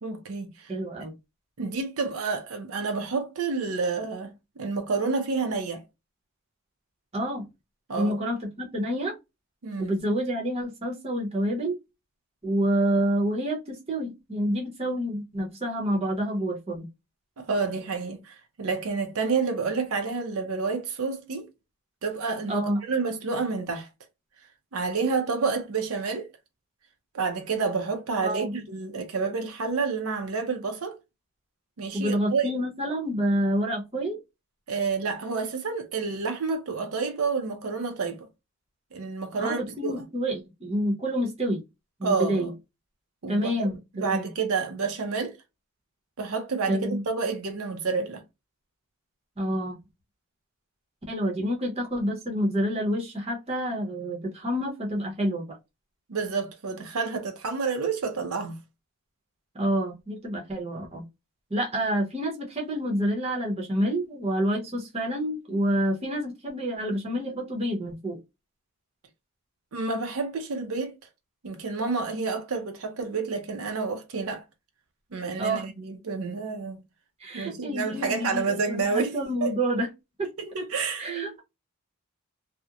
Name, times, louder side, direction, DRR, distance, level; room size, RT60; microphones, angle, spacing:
voice 1, 0.0-0.7 1.6-5.8 7.9-8.2 9.6-10.0 17.4-21.5 22.0-23.9 24.7-26.3 27.1-31.0 31.8-32.5 34.7-38.3 38.9-40.0 42.0-42.5 43.2-43.7 43.9-45.4 46.2-48.2 56.1-58.6 69.7-71.0 71.4-74.4 75.1-76.8 77.3-79.1 79.4-79.5 80.4-81.4, right 4 dB, 75° right, 0.6 m, -29 dB
voice 2, 0.7-1.1 7.1-7.4 7.9-9.2 9.8-11.8 12.4-16.9 22.5-22.8 28.2-28.5 31.9-34.2 39.4-41.6 42.0-42.5 43.3-44.3 46.7-47.0 49.4-49.8 51.1-55.6 59.5-61.1 61.5-68.2 75.4-75.7 77.2-79.9 80.2-80.3 81.0-81.4, equal, 25° right, 0.7 m, -28 dB
2.8 x 2.0 x 2.4 m
head